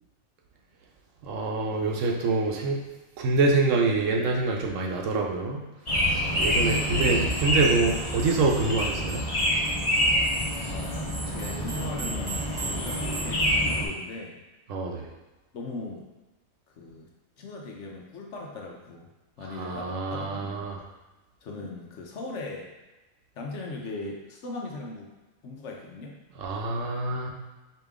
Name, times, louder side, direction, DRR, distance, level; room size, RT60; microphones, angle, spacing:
voice 1, 1.2-2.8 3.2-5.6 6.4-9.2 14.7-15.1 19.6-20.8 26.4-27.3, right 3 dB, 70° right, 1 dB, 1.0 m, -26 dB
sound 1, 5.9-13.9, equal, 30° left, 1.1 m, -27 dB
sound 2, 6.4-13.6, right 3 dB, 45° right, 1.1 m, -40 dB
voice 2, 6.8-7.3 10.2-14.4 15.5-16.1 16.8-17.1 17.4-19.1 19.4-20.7 21.4-22.7 23.3-25.1 25.4-26.2, left 3 dB, 65° left, -1 dB, 1.0 m, -39 dB
5.2 x 2.9 x 3.6 m, 1.1 s
omnidirectional pair, 1.4 m